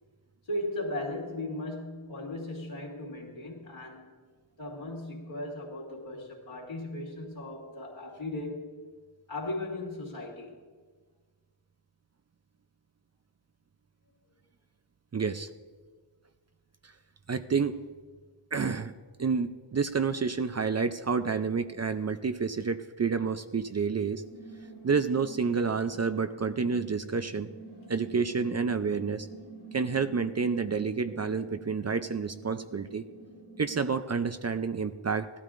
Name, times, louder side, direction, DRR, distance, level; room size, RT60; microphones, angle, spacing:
voice 1, 0.5-4.1 4.6-8.7 9.3-10.6, left 1 dB, 70° left, -2 dB, 2.8 m, -37 dB
voice 2, 15.1-15.5 17.3-17.8 18.5-18.9 19.2-24.2 24.8-27.5 27.9-29.3 29.7-33.0 33.6-35.3, right 5 dB, 35° right, 10 dB, 0.5 m, -29 dB
sound 1, 24.1-33.8, right 3 dB, 55° right, 2.7 m, -48 dB
17.0 x 12.5 x 2.5 m, 1.5 s
cardioid pair, 50°, 48 cm